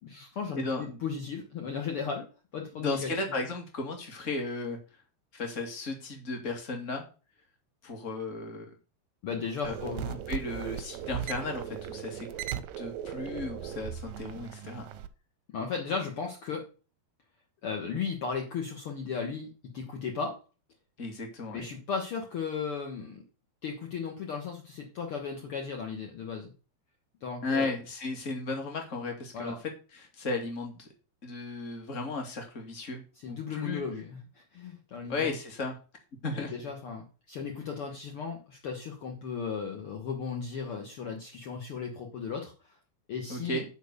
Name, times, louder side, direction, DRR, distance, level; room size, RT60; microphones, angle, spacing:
voice 1, 0.0-2.3 2.5-3.1 9.2-10.2 15.5-16.7 17.6-20.4 21.5-23.2 23.6-26.5 27.2-27.7 29.3-29.6 33.2-35.3 36.3-42.7 43.1-43.6, left 6 dB, 70° left, 2 dB, 1.3 m, -36 dB
voice 2, 0.6-1.0 2.7-4.8 5.3-7.0 7.8-8.7 9.6-9.7 10.1-12.3 12.8-14.8 21.0-21.6 27.4-29.5 29.9-30.9 31.2-33.8 35.1-35.8 36.2-36.5 43.3-43.6, left 3 dB, 25° left, 3 dB, 1.6 m, -35 dB
sound 1, 9.6-15.1, right 10 dB, 80° right, 2.1 m, -38 dB
10.0 x 4.6 x 6.6 m, 0.34 s
omnidirectional pair, 4.7 m